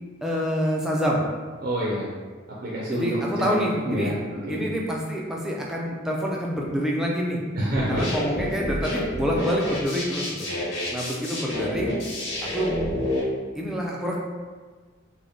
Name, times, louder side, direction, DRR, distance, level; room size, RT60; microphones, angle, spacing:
voice 1, 0.2-1.2 2.9-4.1 4.5-7.4 7.9-10.5 10.9-12.0 12.4-12.8 13.5-14.2, equal, ahead, -3 dB, 0.4 m, -27 dB
voice 2, 1.6-2.1 2.6-4.6 7.6-8.0, right 1 dB, 50° right, -6 dB, 0.6 m, -28 dB
sound 1, 7.7-13.2, left 1 dB, 75° left, 1.3 m, -29 dB
3.4 x 2.2 x 3.8 m, 1.5 s
head